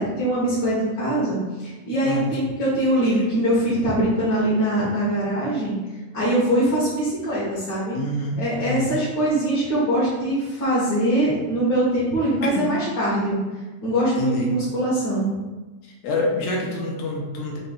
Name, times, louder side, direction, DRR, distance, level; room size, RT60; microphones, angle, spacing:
voice 1, 0.0-5.8 6.1-8.0 8.4-13.4 13.8-15.3, right 1 dB, 60° left, -9 dB, 1.2 m, -22 dB
voice 2, 7.9-8.9 12.4-12.7 14.2-14.5 16.0-17.6, left 2 dB, 80° left, -2 dB, 2.1 m, -27 dB
5.4 x 4.0 x 2.3 m, 1.2 s
omnidirectional pair, 3.4 m